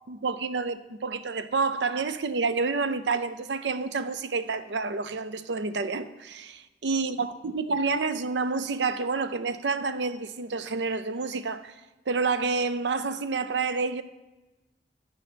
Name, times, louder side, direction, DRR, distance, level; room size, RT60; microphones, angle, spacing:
voice 1, 0.0-11.7 12.1-14.0, right 4 dB, 85° right, 0.6 m, -29 dB
14.5 x 5.6 x 5.1 m
head